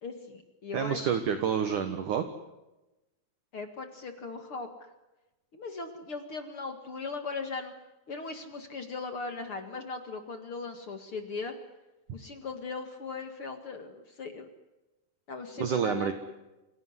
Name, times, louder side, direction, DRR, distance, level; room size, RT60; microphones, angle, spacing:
voice 1, 0.0-1.1 3.5-4.7 5.5-7.7 8.1-11.5 12.1-14.5 15.3-16.1, left 4 dB, 45° left, 7 dB, 2.0 m, -38 dB
voice 2, 0.7-2.2 15.6-16.1, right 7 dB, 60° right, 9 dB, 2.5 m, -28 dB
27.0 x 17.0 x 9.7 m, 1.0 s
omnidirectional pair, 4.7 m